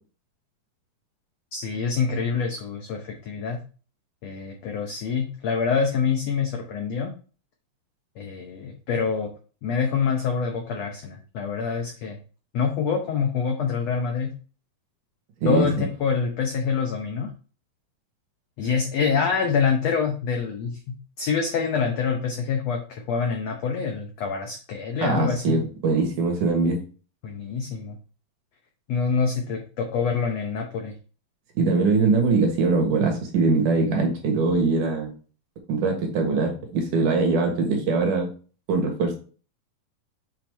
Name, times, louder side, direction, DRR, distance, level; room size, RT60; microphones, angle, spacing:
voice 1, 1.5-3.6 4.2-7.1 8.2-9.3 9.6-12.2 12.5-14.3 15.4-17.3 18.6-25.6 27.2-28.0 28.9-30.9, left 5 dB, 85° left, 3 dB, 1.4 m, -26 dB
voice 2, 25.0-26.8 31.6-35.1 35.7-38.3 38.7-39.2, right 3 dB, 65° right, 2 dB, 2.8 m, -22 dB
8.0 x 4.3 x 3.4 m, 0.38 s
omnidirectional pair, 4.1 m